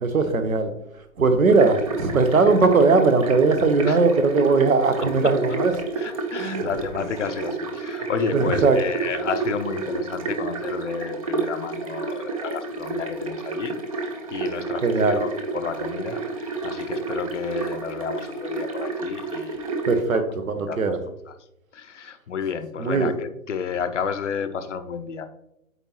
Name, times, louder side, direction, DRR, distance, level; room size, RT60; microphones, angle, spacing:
voice 1, 0.0-0.7 1.2-5.7 6.4-6.6 8.3-8.8 14.8-15.2 19.9-21.0 22.8-23.1, right 4 dB, 70° right, 9 dB, 1.0 m, -19 dB
sound 1, 1.5-20.0, right 4 dB, 25° right, 0.5 m, -30 dB
voice 2, 6.0-20.2 20.6-21.0 21.3-21.4 21.7-25.3, left 6 dB, 55° left, 10 dB, 0.6 m, -31 dB
8.0 x 4.2 x 3.0 m, 0.83 s
figure-of-eight pair, 125°, 42 cm